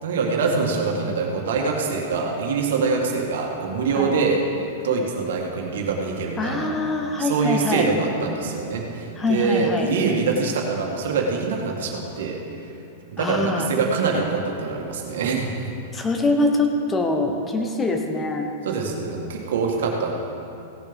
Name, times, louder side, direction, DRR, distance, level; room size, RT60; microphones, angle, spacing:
voice 1, 0.0-6.7 7.2-12.7 13.1-15.7 18.6-20.1, right 4 dB, 80° right, 0 dB, 1.9 m, -24 dB
voice 2, 6.4-7.9 9.2-10.0 13.2-13.7 15.9-18.5, left 2 dB, 15° left, 4 dB, 1.1 m, -24 dB
16.5 x 6.6 x 5.3 m, 2.8 s
hypercardioid pair, 135°, 0 cm